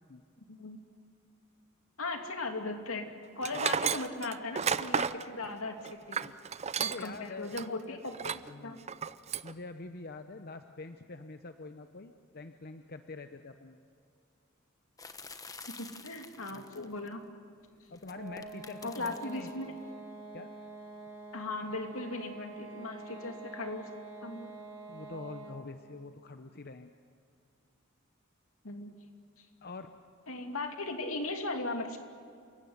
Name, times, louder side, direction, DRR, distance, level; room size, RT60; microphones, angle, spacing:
voice 1, 2.0-3.1 3.4-6.2 6.8-8.1 8.6-8.8 15.8-17.2 18.8-19.7 21.3-23.9 24.2-24.5 28.6-28.9 29.4-29.5 30.3-32.0, left 2 dB, 80° left, 4 dB, 2.8 m, -38 dB
Tools, 3.4-7.2 7.5-7.6 8.1-8.5 8.9-9.5, right 6 dB, 30° right, 0.6 m, -32 dB
voice 2, 6.8-7.5 7.9-8.0 8.5-8.8 9.4-13.8 16.5-16.7 17.9-19.8 20.3-20.5 24.9-26.9 29.6-29.9, left 3 dB, 50° left, 8 dB, 0.9 m, -45 dB
sound 1, 15.0-17.1 17.9-19.6, left 4 dB, 15° left, 1.2 m, -49 dB
sound 2, 18.0-25.7, right 2 dB, 70° right, 5.9 m, -46 dB
29.0 x 17.0 x 9.5 m, 2.3 s
head